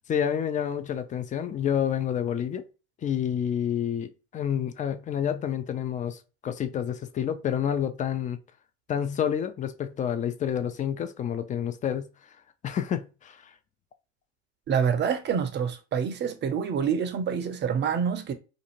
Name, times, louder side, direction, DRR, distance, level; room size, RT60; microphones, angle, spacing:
voice 1, 0.1-2.6 3.0-8.4 8.9-12.1 12.6-13.5, left 9 dB, 25° left, 0.4 m, -29 dB
voice 2, 14.7-18.3, right 7 dB, 30° right, 0.6 m, -27 dB
2.6 x 2.4 x 2.9 m
hypercardioid pair, 85°, 34 cm